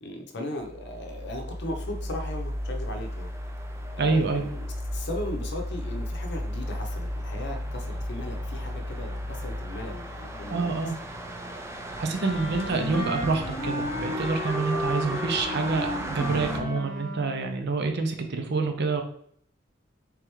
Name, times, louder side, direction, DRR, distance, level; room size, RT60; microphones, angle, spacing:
voice 1, 0.0-3.3 3.9-10.8 12.4-13.0 14.7-14.8, left 1 dB, 60° left, 3 dB, 0.7 m, -37 dB
sound 1, 0.6-16.6, equal, 15° right, 0.3 m, -35 dB
voice 2, 4.0-4.4 10.5-10.9 12.0-19.0, right 4 dB, 60° right, 5 dB, 0.6 m, -27 dB
Wind instrument woodwind instrument, 12.1-17.4, left 1 dB, 5° left, 1.1 m, -33 dB
3.5 x 3.3 x 3.1 m, 0.63 s
head